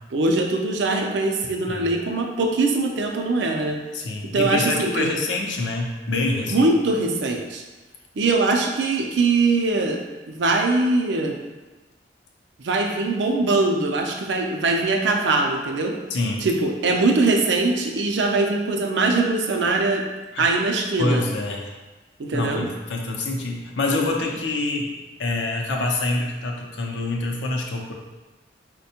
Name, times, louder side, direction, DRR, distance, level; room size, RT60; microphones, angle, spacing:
voice 1, 0.1-3.8 4.3-5.1 6.5-7.6 8.2-10.0 10.3-11.3 12.6-15.9 16.4-20.0 20.4-21.2 22.2-22.7, right 3 dB, 75° right, 3 dB, 0.4 m, -22 dB
voice 2, 3.9-6.7 16.1-16.5 20.3-20.4 21.0-21.7 22.3-24.9 25.2-27.9, left 2 dB, 80° left, 1 dB, 0.5 m, -26 dB
4.2 x 2.2 x 2.7 m, 1.2 s
head